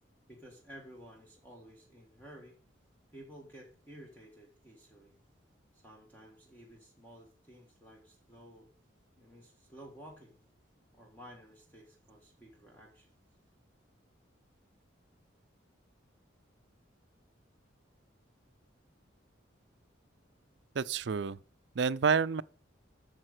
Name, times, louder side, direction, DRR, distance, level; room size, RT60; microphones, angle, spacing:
voice 1, 0.3-2.6 3.1-5.1 5.7-8.7 9.2-10.4 10.9-13.1, equal, 10° left, 1.6 m, -53 dB
voice 2, 20.7-21.4 21.7-22.4, right 6 dB, 60° right, 0.4 m, -29 dB
8.8 x 6.6 x 6.4 m
head